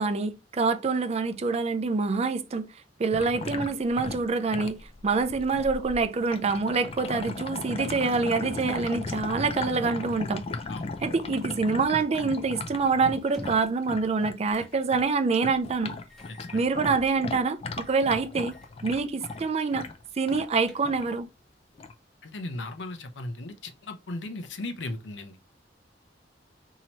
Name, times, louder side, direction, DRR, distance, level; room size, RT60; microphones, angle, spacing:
voice 1, 0.0-2.7 3.0-10.4 11.0-15.9 16.5-18.5 18.8-19.8 20.2-21.3, right 4 dB, 35° right, 0.4 m, -26 dB
sound 1, 3.1-15.1 15.3-20.5 20.8-21.2 21.8-21.9, left 3 dB, 35° left, 0.3 m, -37 dB
sound 2, 13.2-13.8 14.5-14.8 15.1-15.2 16.1-17.2 17.7-18.1 18.4-18.7 19.2-19.5 19.8-19.9 20.4-21.2, left 1 dB, ahead, 0.7 m, -49 dB
voice 2, 16.3-16.6 22.2-25.4, left 2 dB, 80° left, 0.6 m, -37 dB
2.9 x 2.8 x 4.3 m
head